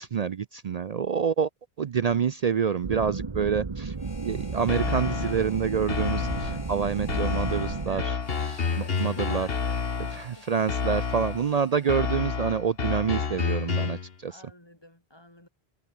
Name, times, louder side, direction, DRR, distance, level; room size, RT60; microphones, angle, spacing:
voice 1, 0.0-1.5 1.8-4.0 4.2-8.1 8.4-9.5 10.1-14.4, right 7 dB, 50° right, 0.5 m, -27 dB
sound 1, 2.8-8.0, right 4 dB, 30° right, 0.9 m, -34 dB
Harmonica, 3.9-12.6, left 3 dB, 45° left, 2.3 m, -50 dB
sound 2, 4.7-5.5 5.9-6.7 7.1-10.3 10.7-11.5 11.9-14.1, left 5 dB, 65° left, 1.6 m, -29 dB
voice 2, 7.9-8.2 8.6-9.8 10.1-10.6 14.3-15.5, left 1 dB, 25° left, 3.5 m, -49 dB
omnidirectional pair, 1.1 m